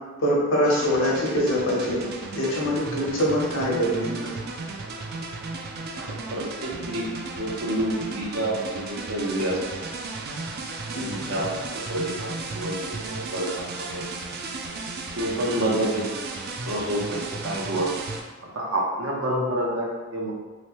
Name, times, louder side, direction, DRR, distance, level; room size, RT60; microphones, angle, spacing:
voice 1, 0.2-2.0 2.3-4.4 10.9-11.2 15.5-15.6, equal, 65° left, -4 dB, 1.0 m, -24 dB
sound 1, 0.6-18.2, right 3 dB, 50° right, 0.4 m, -35 dB
voice 2, 6.0-7.1 7.4-9.6 11.0-14.1 15.2-16.0 16.7-17.9 18.5-20.3, right 1 dB, 70° right, -3 dB, 0.8 m, -28 dB
3.1 x 3.0 x 3.0 m, 1.3 s
head